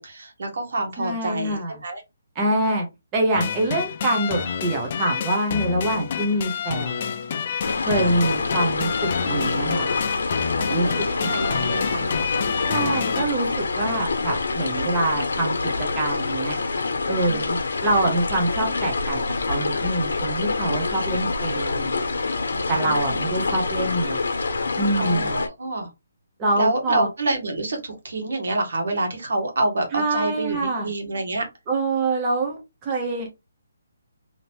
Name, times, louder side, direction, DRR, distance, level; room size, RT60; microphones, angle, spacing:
voice 1, 0.0-2.0 7.9-8.1 10.6-12.1 17.1-17.4 22.5-23.2 25.0-25.9 26.5-31.5, right 2 dB, 70° right, 3 dB, 1.4 m, -28 dB
voice 2, 1.0-1.8 2.3-2.9 3.1-7.1 7.9-9.9 10.7-11.7 12.7-16.6 17.1-19.2 19.5-22.0 22.7-24.2 24.8-25.4 26.4-27.1 29.9-30.9 31.7-33.3, right 2 dB, 15° right, -1 dB, 0.7 m, -25 dB
sound 1, 3.3-13.2, left 7 dB, 35° left, 0.3 m, -29 dB
sound 2, 7.6-25.5, left 3 dB, 75° left, 0.9 m, -26 dB
2.9 x 2.8 x 3.0 m, 0.23 s
hypercardioid pair, 170°, 0 cm